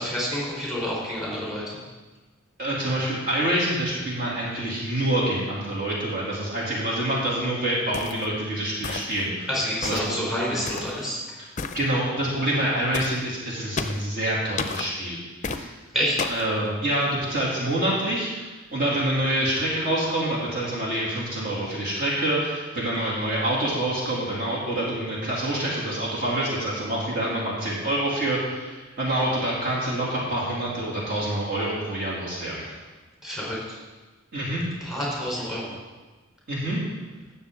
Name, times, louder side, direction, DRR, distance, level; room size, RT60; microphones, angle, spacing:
voice 1, 0.0-1.8 9.5-11.2 15.9-16.2 33.2-33.8 34.8-35.8, equal, ahead, -6 dB, 3.7 m, -28 dB
voice 2, 2.6-9.5 9.8-10.2 11.7-15.2 15.5-15.7 16.3-32.7 34.3-34.6 36.5-36.8, right 1 dB, 45° right, -7 dB, 2.7 m, -26 dB
sound 1, 7.9-8.3 8.8-9.3 9.8-10.1 10.7-11.0 11.6-11.8 12.9-13.2 13.8-14.1 14.6-14.9 15.4-15.6 16.2-16.5, left 4 dB, 35° left, 0.5 m, -31 dB
16.5 x 7.0 x 3.7 m, 1.2 s
head